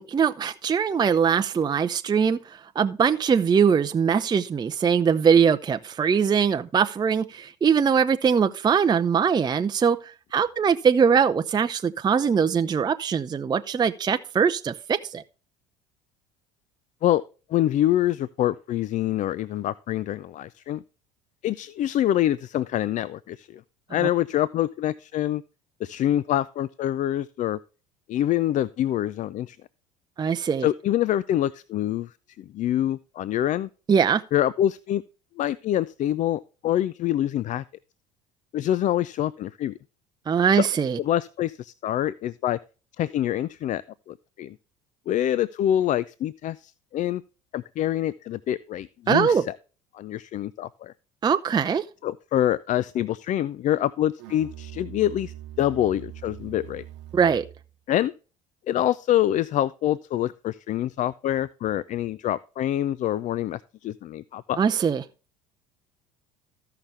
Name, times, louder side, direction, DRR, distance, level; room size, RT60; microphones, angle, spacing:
voice 1, 0.0-15.2 30.2-30.7 33.9-34.2 40.3-41.0 49.1-49.4 51.2-51.8 57.1-57.4 64.6-65.0, right 6 dB, 25° right, 0.5 m, -22 dB
voice 2, 17.5-20.8 21.4-23.6 23.9-25.4 25.8-27.6 28.1-29.6 30.6-32.1 32.4-33.7 34.3-35.0 35.4-37.6 38.5-39.7 40.5-40.7 41.0-42.6 43.0-43.8 44.1-44.6 45.1-47.2 47.5-49.4 49.9-50.9 52.0-56.9 57.9-58.1 58.7-64.6, left 12 dB, 45° left, 0.4 m, -25 dB
Musical instrument, 54.2-57.7, right 13 dB, 75° right, 0.9 m, -42 dB
14.5 x 5.8 x 3.3 m
supercardioid pair, 80°, 17 cm